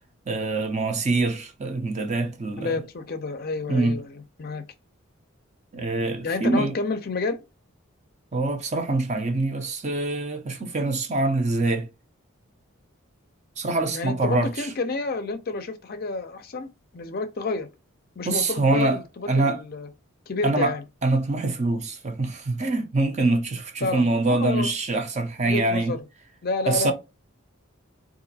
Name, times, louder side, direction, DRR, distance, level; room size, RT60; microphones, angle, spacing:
voice 1, 0.3-2.8 3.7-4.0 5.7-6.7 8.3-11.9 13.6-14.7 18.2-19.0 19.3-19.6 20.4-20.7 21.0-25.9 26.7-26.9, right 2 dB, 35° right, 0.6 m, -24 dB
voice 2, 2.6-4.6 6.2-7.4 13.9-16.7 16.9-17.7 18.2-19.9 20.3-20.8 23.8-24.7 25.4-26.0 26.4-26.9, left 3 dB, 45° left, 0.5 m, -29 dB
3.8 x 2.5 x 2.7 m
head